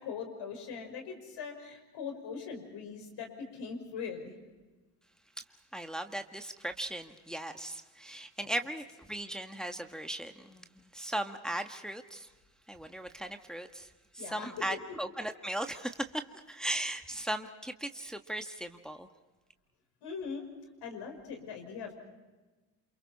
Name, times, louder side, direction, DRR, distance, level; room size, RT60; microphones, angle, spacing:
voice 1, 0.0-4.3 14.2-14.5 20.0-20.5 20.8-21.9, left 6 dB, 60° left, 4 dB, 5.6 m, -41 dB
voice 2, 5.7-12.3 12.7-16.2 16.5-19.1, right 1 dB, ahead, 5 dB, 1.7 m, -38 dB
28.5 x 28.5 x 4.3 m, 1.2 s
hypercardioid pair, 50°, 45 cm